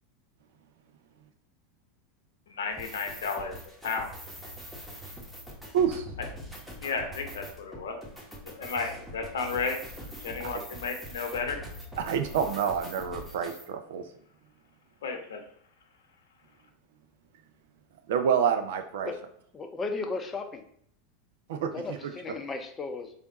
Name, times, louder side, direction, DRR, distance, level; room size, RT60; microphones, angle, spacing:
voice 1, 2.5-3.6 3.8-4.1 6.8-8.0 8.5-9.8 10.2-11.6 15.0-15.4, left 5 dB, 75° left, 4 dB, 0.7 m, -33 dB
sound 1, 2.7-13.7, equal, 5° right, 1.2 m, -43 dB
voice 2, 5.7-6.1 10.4-10.5 12.0-14.0 18.1-19.1 21.5-22.0, right 7 dB, 70° right, 7 dB, 0.5 m, -28 dB
voice 3, 19.5-20.6 21.7-23.1, left 3 dB, 25° left, 6 dB, 0.6 m, -35 dB
3.4 x 2.5 x 4.0 m, 0.67 s
hypercardioid pair, 90°, 0 cm